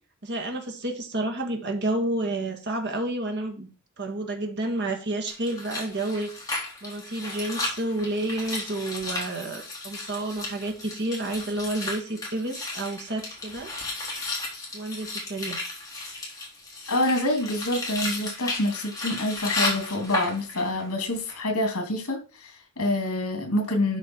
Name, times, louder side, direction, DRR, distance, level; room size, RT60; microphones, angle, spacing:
voice 1, 0.2-3.7 4.0-6.5 6.8-13.7 14.7-15.6, right 2 dB, 50° right, 3 dB, 1.8 m, -30 dB
sound 1, 5.3-20.8 21.1-21.4, left 2 dB, 15° left, 3.2 m, -34 dB
voice 2, 16.9-24.0, left 1 dB, 75° left, 4 dB, 2.8 m, -27 dB
12.0 x 4.8 x 4.5 m, 0.35 s
head